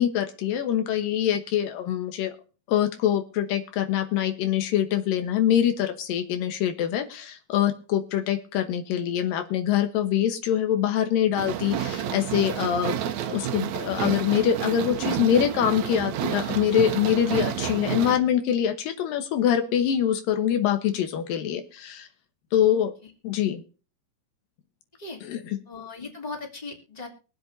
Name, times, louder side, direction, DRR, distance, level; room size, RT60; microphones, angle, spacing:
voice 1, 0.0-2.3 2.7-13.0 13.3-22.1 22.5-22.9 23.2-23.6 25.2-25.6, left 10 dB, 85° left, 8 dB, 2.9 m, -24 dB
sound 1, 11.4-18.2, right 10 dB, 70° right, 2.0 m, -30 dB
voice 2, 25.7-27.1, left 3 dB, 10° left, 1 dB, 2.8 m, -38 dB
23.5 x 7.9 x 2.7 m, 0.36 s
omnidirectional pair, 3.9 m